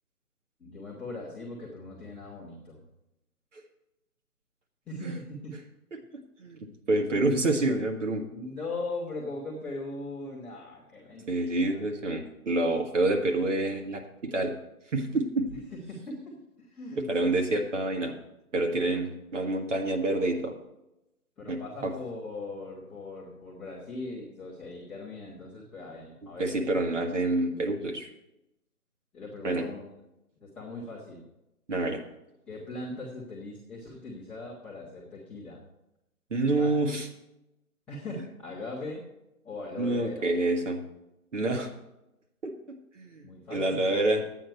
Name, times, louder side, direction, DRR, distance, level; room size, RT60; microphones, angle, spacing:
voice 1, 0.6-2.8 4.9-5.6 7.1-7.3 8.3-11.8 15.5-17.3 18.9-19.0 21.4-26.6 29.1-29.8 30.4-31.2 32.5-35.6 36.5-36.7 37.9-39.0 39.4-40.3 43.2-44.2, left 2 dB, 5° left, -11 dB, 0.9 m, -40 dB
voice 2, 6.1-8.2 11.3-14.5 14.9-15.5 17.0-18.1 18.5-20.6 21.5-21.9 26.4-28.1 29.4-29.6 31.7-32.0 36.3-37.1 39.8-40.8 41.3-41.7 42.4-44.2, right 2 dB, 55° right, 3 dB, 1.8 m, -28 dB
11.5 x 9.2 x 4.5 m, 0.90 s
figure-of-eight pair, 145°, 45 cm